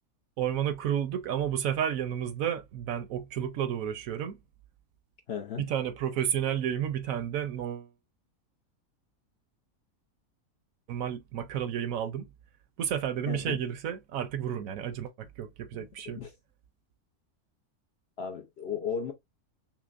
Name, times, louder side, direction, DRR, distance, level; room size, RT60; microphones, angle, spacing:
voice 1, 0.4-4.4 5.6-7.9 10.9-12.3 12.8-16.2, right 9 dB, 70° right, 1.0 m, -31 dB
voice 2, 5.3-5.7 13.3-13.6 15.7-16.3 18.2-19.1, left 7 dB, 60° left, 0.7 m, -35 dB
5.8 x 2.1 x 2.3 m
omnidirectional pair, 1.6 m